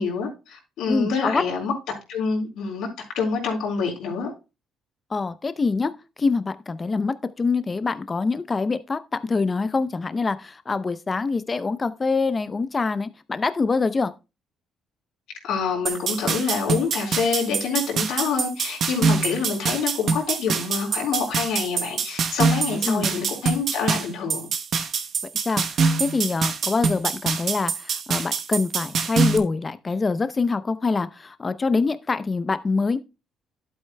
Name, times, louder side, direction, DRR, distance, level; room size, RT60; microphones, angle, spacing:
voice 1, 0.0-1.7 2.1-2.9 3.1-4.3 15.4-24.5, left 5 dB, 80° left, 4.3 m, -26 dB
voice 2, 0.9-1.4 5.1-5.9 6.2-14.1 22.8-23.1 25.5-25.6 26.0-33.0, left 4 dB, 25° left, 0.6 m, -25 dB
sound 1, 15.9-29.4, right 5 dB, 55° right, 1.0 m, -25 dB
11.5 x 8.1 x 2.2 m
cardioid pair, 105°, 0 cm